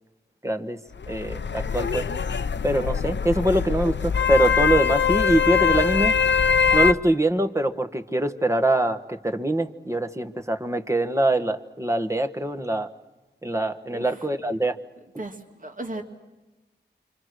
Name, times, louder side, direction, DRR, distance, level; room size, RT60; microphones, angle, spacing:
voice 1, 0.4-0.8 1.1-2.1 2.6-6.1 6.7-12.9 13.4-14.8, right 1 dB, 15° right, 6 dB, 1.5 m, -23 dB
Tràfic a Tanger, 0.9-6.9, left 6 dB, 80° left, 0.8 m, -22 dB
voice 2, 13.9-14.3 15.2-16.0, right 2 dB, 45° right, 3 dB, 2.7 m, -36 dB
29.5 x 25.0 x 6.4 m, 1.1 s
wide cardioid pair, 70°, 18 cm